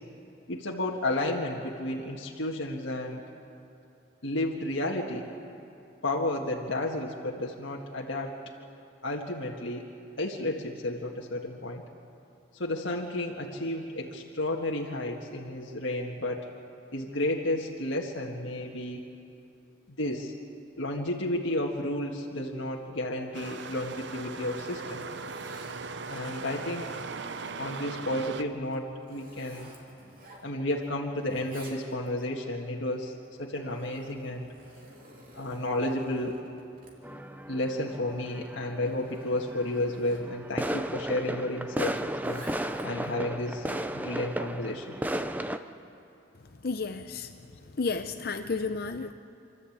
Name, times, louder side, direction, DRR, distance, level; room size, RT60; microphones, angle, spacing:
voice 1, 0.5-3.2 4.2-5.3 6.0-8.4 9.0-9.8 10.2-11.8 12.5-16.5 16.9-19.0 19.9-20.3 20.8-25.1 26.1-26.9 27.6-29.7 30.4-33.1 33.4-34.5 35.3-36.4 37.5-42.4 42.8-43.7 43.9-45.0, left 1 dB, 70° left, -1 dB, 1.7 m, -32 dB
sound 1, 23.3-28.4, right 4 dB, 60° right, 0.7 m, -39 dB
Zipper (clothing), 24.8-26.3 26.8-28.1 28.6-30.9 31.1-32.3 33.1-40.3 41.9-43.1, right 1 dB, 45° right, 3.3 m, -53 dB
sound 2, 37.0-45.6, right 1 dB, 10° right, 0.5 m, -35 dB
voice 2, 46.6-47.3 47.8-49.1, left 4 dB, 50° left, 7 dB, 0.6 m, -32 dB
27.5 x 12.5 x 8.6 m, 2.6 s
head